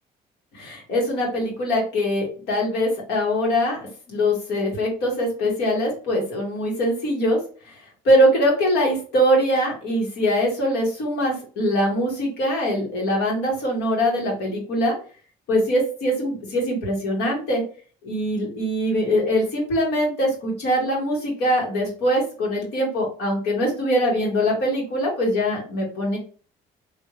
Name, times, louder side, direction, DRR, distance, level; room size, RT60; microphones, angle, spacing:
voice 1, 0.5-3.8 4.1-7.4 8.1-15.0 15.5-17.6 18.0-26.2, equal, 75° left, -1 dB, 2.1 m, -22 dB
3.6 x 3.0 x 3.2 m, 0.41 s
cardioid pair, 110°, 17 cm